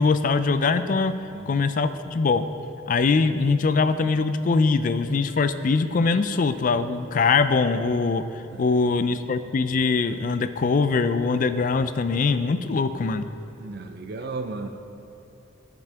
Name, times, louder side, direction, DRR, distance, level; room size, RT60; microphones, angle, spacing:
voice 1, 0.0-1.1 1.5-2.5 2.9-8.2 8.6-13.3, left 4 dB, 40° left, 11 dB, 0.3 m, -22 dB
voice 2, 13.6-14.7, right 3 dB, 50° right, 6 dB, 0.4 m, -34 dB
14.5 x 6.0 x 3.5 m, 2.9 s
head